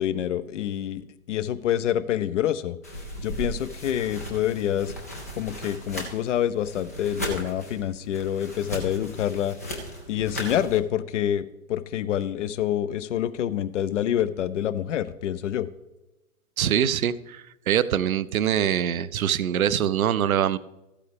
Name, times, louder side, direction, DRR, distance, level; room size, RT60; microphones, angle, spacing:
voice 1, 0.0-2.8 3.2-4.9 5.3-9.5 10.1-15.7, left 11 dB, 55° left, 15 dB, 0.7 m, -27 dB
sound 1, 2.8-10.8, equal, 15° left, 0.3 m, -37 dB
voice 2, 16.6-20.6, right 10 dB, 70° right, 17 dB, 0.6 m, -24 dB
14.0 x 8.4 x 3.4 m, 0.99 s
figure-of-eight pair, 120°, 44 cm